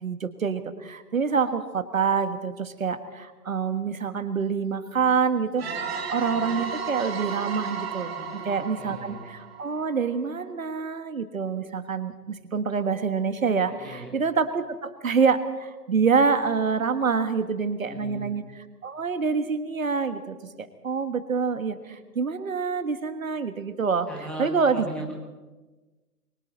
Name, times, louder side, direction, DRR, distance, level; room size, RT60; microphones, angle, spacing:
voice 1, 0.0-5.6 6.1-8.2 8.4-18.4 18.8-24.1 24.4-24.9, right 5 dB, 55° right, 10 dB, 1.5 m, -26 dB
voice 2, 5.6-5.9 8.1-8.5 8.7-9.2 13.6-14.1 17.9-18.3 24.1-25.1, right 2 dB, ahead, -2 dB, 1.9 m, -39 dB
sound 1, 5.6-10.2, right 6 dB, 40° right, 2.5 m, -34 dB
27.5 x 23.5 x 4.2 m, 1.2 s
figure-of-eight pair, 145°, 48 cm